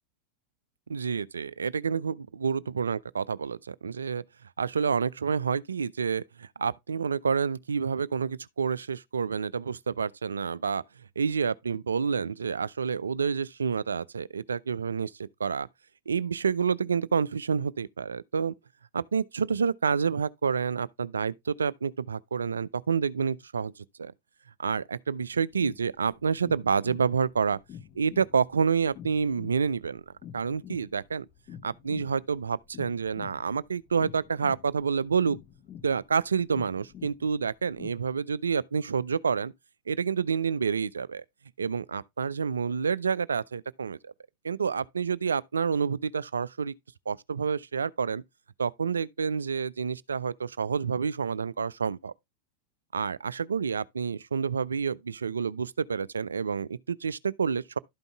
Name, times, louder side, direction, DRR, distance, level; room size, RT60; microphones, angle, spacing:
voice 1, 0.9-4.2 4.6-10.8 11.2-15.7 16.1-18.5 18.9-24.1 24.6-27.6 28.0-31.2 31.6-35.4 35.8-39.5 39.9-41.2 41.6-44.1 44.4-46.7 47.1-48.2 48.6-52.1 52.9-57.8, right 6 dB, 70° right, 0.4 m, -28 dB
sound 1, 25.5-37.9, left 8 dB, 35° left, 1.0 m, -48 dB
12.0 x 5.3 x 3.3 m
figure-of-eight pair, 90°, 0 cm